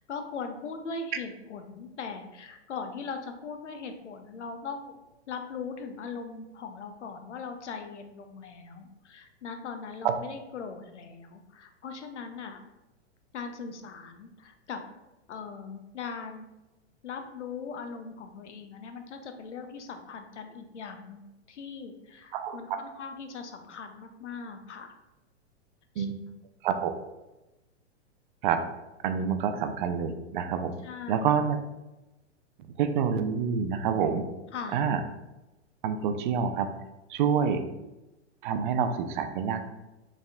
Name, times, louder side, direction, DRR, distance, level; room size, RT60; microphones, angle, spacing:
voice 1, 0.0-5.0 5.3-12.6 13.3-14.8 15.3-16.5 17.0-21.2 21.5-24.9 26.0-26.1 30.8-31.3 34.5-34.8 37.2-37.4, left 5 dB, 90° left, 6 dB, 0.6 m, -40 dB
voice 2, 29.0-30.7 31.1-31.6 32.8-34.2 34.7-35.0 35.8-36.7 37.1-37.6 38.4-39.7, right 7 dB, 45° right, 8 dB, 0.4 m, -27 dB
4.1 x 3.6 x 2.3 m, 1.0 s
hypercardioid pair, 125°, 34 cm